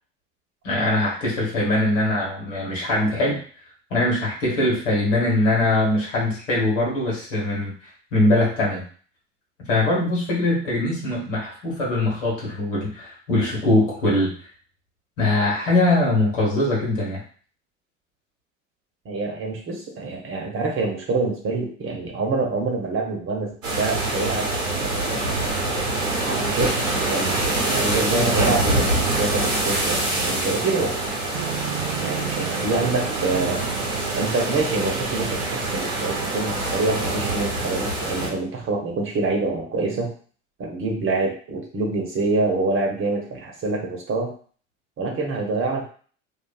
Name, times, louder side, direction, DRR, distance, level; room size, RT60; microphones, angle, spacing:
voice 1, 0.6-3.4 3.9-8.8 9.7-14.3 15.2-17.2, left 2 dB, 75° left, -4 dB, 1.3 m, -22 dB
voice 2, 19.0-24.5 24.8-25.4 26.2-31.1 32.0-33.6 34.2-40.1 40.6-44.3 45.0-45.8, right 3 dB, 35° right, 0 dB, 0.9 m, -26 dB
sound 1, 23.6-38.3, right 2 dB, 80° right, 0.9 m, -25 dB
sound 2, 31.3-37.5, right 9 dB, 50° right, 0.5 m, -34 dB
2.6 x 2.4 x 2.3 m, 0.44 s
figure-of-eight pair, 70°, 38 cm